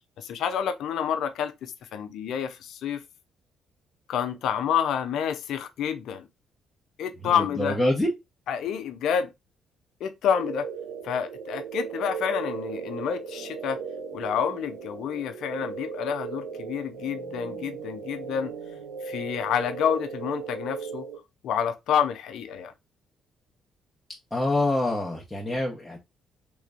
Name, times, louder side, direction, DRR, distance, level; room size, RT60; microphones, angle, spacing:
voice 1, 0.2-3.0 4.1-6.2 7.0-7.8 8.5-9.3 10.0-10.7 11.0-13.8 14.1-18.5 19.0-21.0 21.4-22.7, left 8 dB, 75° left, 0.5 m, -28 dB
voice 2, 7.2-8.1 24.3-26.0, left 1 dB, 10° left, 1.0 m, -26 dB
sound 1, 10.3-21.2, right 6 dB, 85° right, 0.5 m, -37 dB
3.3 x 3.0 x 2.4 m
cardioid pair, 75°, 0 cm